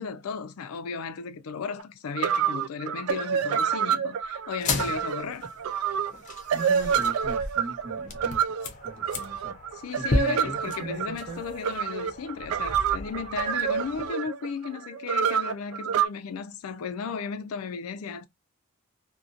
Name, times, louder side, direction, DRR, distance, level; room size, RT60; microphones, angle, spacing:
voice 1, 0.0-5.5 9.8-18.3, left 5 dB, 85° left, 0.4 m, -35 dB
sound 1, 1.8-1.9 2.2-16.1, right 7 dB, 80° right, 0.3 m, -28 dB
sound 2, 4.5-14.1, left 2 dB, 35° left, 0.5 m, -35 dB
voice 2, 6.5-9.5 9.9-11.4, right 2 dB, 50° right, 0.9 m, -39 dB
2.6 x 2.2 x 2.3 m
head